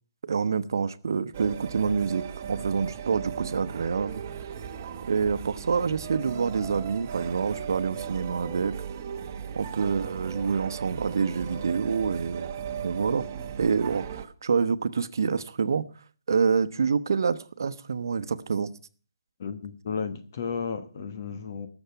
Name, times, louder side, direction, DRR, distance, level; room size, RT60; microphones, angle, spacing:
voice 1, 0.3-4.2 5.1-8.7 9.5-12.5 12.8-13.3 13.6-15.8 16.3-18.7, right 5 dB, 60° right, 1.0 m, -27 dB
sound 1, 1.3-14.3, right 8 dB, 30° right, 1.0 m, -37 dB
voice 2, 19.4-21.7, left 5 dB, 40° left, 1.2 m, -33 dB
18.5 x 7.2 x 5.7 m
hypercardioid pair, 165°, 2 cm